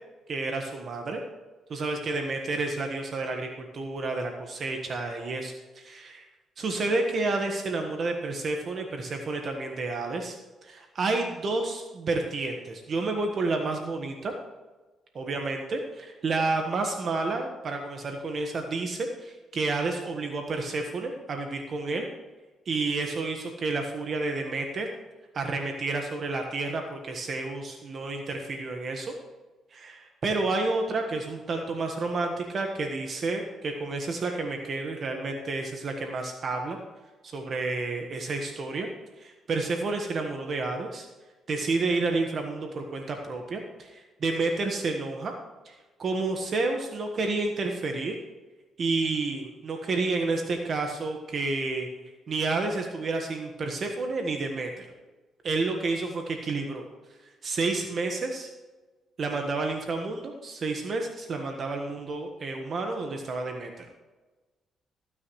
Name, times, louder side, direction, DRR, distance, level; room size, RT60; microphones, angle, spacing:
voice 1, 0.3-1.2 1.7-6.3 6.6-10.3 10.6-14.3 15.1-22.1 22.6-24.9 25.3-29.1 29.7-36.8 37.2-38.9 39.2-41.1 41.5-45.3 45.6-45.7 46.0-48.1 48.8-51.9 52.3-54.9 55.4-56.9 57.4-58.5 59.2-63.9, right 3 dB, 50° right, 3 dB, 1.4 m, -30 dB
15.5 x 9.6 x 3.2 m, 1.2 s
cardioid pair, 90°, 0 cm